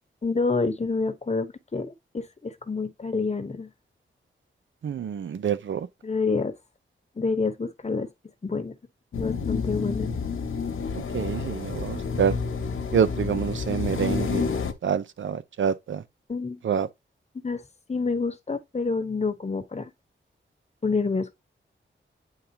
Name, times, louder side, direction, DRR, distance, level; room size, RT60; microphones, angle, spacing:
voice 1, 0.2-3.7 6.0-6.5 7.2-8.1 8.4-8.7 9.2-10.1 16.3-16.6 17.4-17.6 17.9-19.9 20.8-21.3, left 4 dB, 30° left, 1.0 m, -28 dB
voice 2, 4.8-5.9 11.1-12.3 12.9-14.5 14.8-16.0 16.6-16.9, right 7 dB, 70° right, 0.6 m, -26 dB
sound 1, 9.1-14.7, left 5 dB, 80° left, 1.0 m, -29 dB
9.3 x 3.6 x 2.8 m
wide cardioid pair, 105°, 21 cm